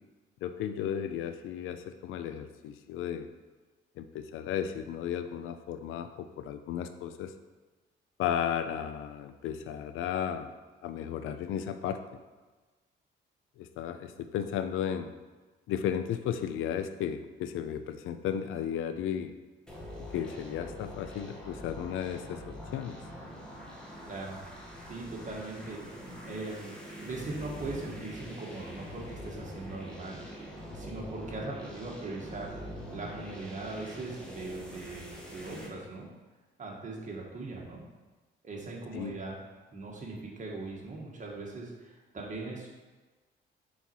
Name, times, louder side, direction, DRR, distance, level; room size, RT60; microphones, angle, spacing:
voice 1, 0.4-3.3 4.0-7.3 8.2-10.5 10.8-12.2 13.6-15.1 15.7-19.3 20.1-23.0 38.9-39.2, left 9 dB, 85° left, 9 dB, 0.5 m, -34 dB
sound 1, 19.7-35.7, equal, 5° left, 1.4 m, -44 dB
voice 2, 24.1-24.4 24.9-26.7 27.0-30.5 30.7-32.5 32.9-36.1 36.6-37.8 38.4-39.3 39.7-42.7, right 3 dB, 40° right, -2 dB, 1.6 m, -40 dB
5.5 x 4.2 x 4.6 m, 1.3 s
cardioid pair, 90°, 20 cm